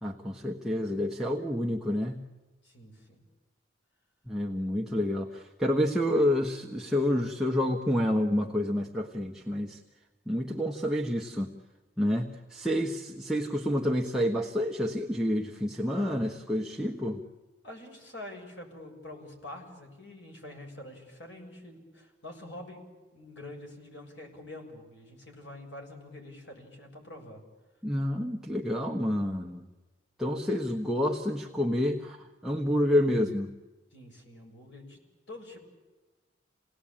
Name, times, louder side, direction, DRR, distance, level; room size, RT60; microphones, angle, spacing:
voice 1, 0.0-2.2 4.3-9.8 10.3-11.5 12.0-17.2 27.8-29.6 30.2-33.5, left 1 dB, 5° right, -1 dB, 1.3 m, -28 dB
voice 2, 2.6-3.2 17.6-22.8 23.1-27.4 33.9-35.0 35.3-35.6, left 1 dB, 75° left, 2 dB, 7.0 m, -46 dB
28.5 x 18.5 x 8.8 m, 1.2 s
head